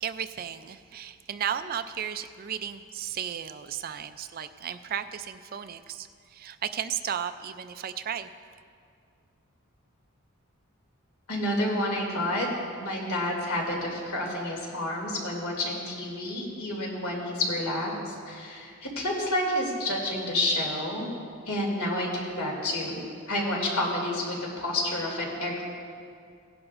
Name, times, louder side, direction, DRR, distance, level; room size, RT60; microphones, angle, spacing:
voice 1, 0.0-8.3, right 9 dB, 40° right, 11 dB, 0.3 m, -34 dB
voice 2, 11.3-12.5 12.8-21.1 21.5-25.6, left 1 dB, 80° left, -2 dB, 2.5 m, -29 dB
17.0 x 11.0 x 2.5 m, 2.3 s
head